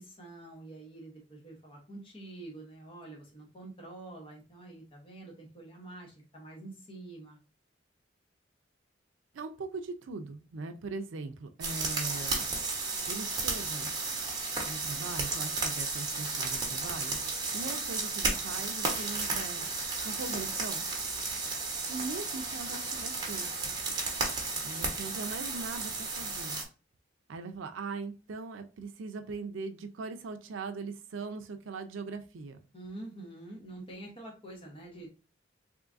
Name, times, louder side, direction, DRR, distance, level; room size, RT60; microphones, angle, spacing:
voice 1, 0.0-7.4 32.7-35.1, right 2 dB, 30° left, -1 dB, 1.0 m, -47 dB
voice 2, 9.3-12.5 13.0-13.9 14.7-17.2 17.5-19.7 20.0-20.9 21.9-23.8 24.6-26.6 27.3-32.6, right 4 dB, 85° right, 6 dB, 0.5 m, -40 dB
sound 1, 11.6-26.6, right 3 dB, 20° right, 1.0 m, -33 dB
3.5 x 3.1 x 2.5 m, 0.33 s
head